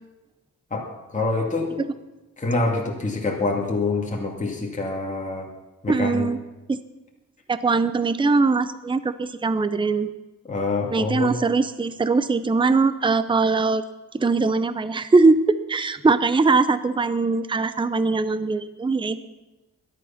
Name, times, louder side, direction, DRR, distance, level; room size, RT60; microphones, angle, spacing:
voice 1, 0.7-1.7 2.4-5.5 5.8-6.3 10.5-11.4, left 3 dB, 20° left, -2 dB, 2.3 m, -26 dB
voice 2, 5.9-6.4 6.7-6.8 7.5-10.1 10.9-13.8 14.1-19.2, right 3 dB, 15° right, 13 dB, 0.6 m, -21 dB
21.5 x 11.0 x 5.7 m, 1.1 s
wide cardioid pair, 160°, 33 cm